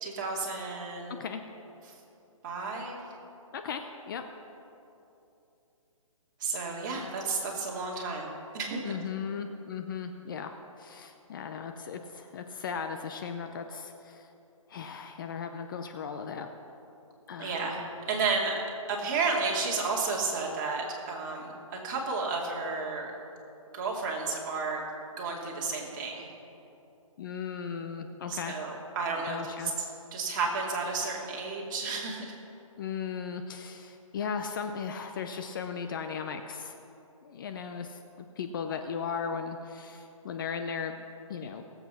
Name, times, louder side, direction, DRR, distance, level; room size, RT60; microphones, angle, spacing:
voice 1, 0.0-1.2 2.4-3.0 6.4-8.8 17.4-18.6 18.9-21.5 21.8-23.1 23.7-24.8 25.2-26.3 28.3-32.3, right 4 dB, 35° right, -2 dB, 2.5 m, -32 dB
voice 2, 1.1-1.4 3.5-4.2 8.8-10.5 10.8-14.3 14.7-16.5 17.3-17.7 27.2-28.6 29.3-29.7 32.8-36.8 37.2-38.0 38.4-41.0 41.3-41.6, left 6 dB, 35° left, 6 dB, 0.7 m, -37 dB
18.5 x 8.1 x 5.7 m, 2.9 s
hypercardioid pair, 150°, 18 cm